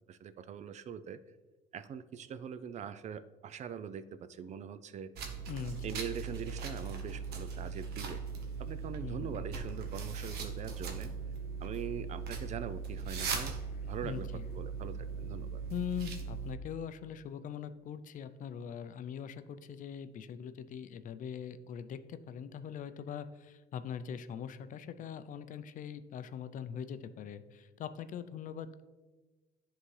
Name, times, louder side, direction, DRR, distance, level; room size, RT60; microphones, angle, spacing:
voice 1, 0.1-1.2 1.7-5.1 5.8-8.2 8.6-11.1 11.6-13.6 13.9-15.6, right 7 dB, 45° right, 13 dB, 0.4 m, -42 dB
sound 1, 5.2-16.5, right 5 dB, 70° right, 1.0 m, -39 dB
voice 2, 5.5-6.0 9.0-9.3 14.0-14.5 15.7-28.8, left 8 dB, 50° left, 12 dB, 0.4 m, -42 dB
11.0 x 3.7 x 3.2 m, 1.2 s
cardioid pair, 110°, 17 cm